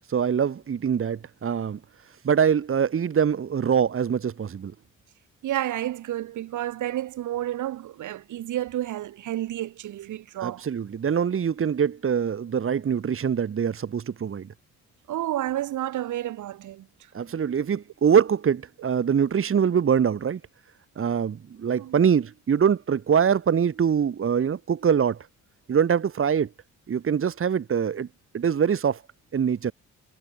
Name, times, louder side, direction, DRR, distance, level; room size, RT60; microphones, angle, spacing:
voice 1, 0.1-1.8 2.2-4.7 10.4-14.5 17.1-20.4 21.0-25.3 25.7-26.5 26.9-28.1 28.3-29.0 29.3-29.7, right 7 dB, 45° right, 2.3 m, -23 dB
voice 2, 5.4-10.6 15.1-16.9 21.7-22.0, right 13 dB, 80° right, 3.9 m, -30 dB
cardioid pair, 90°, 30 cm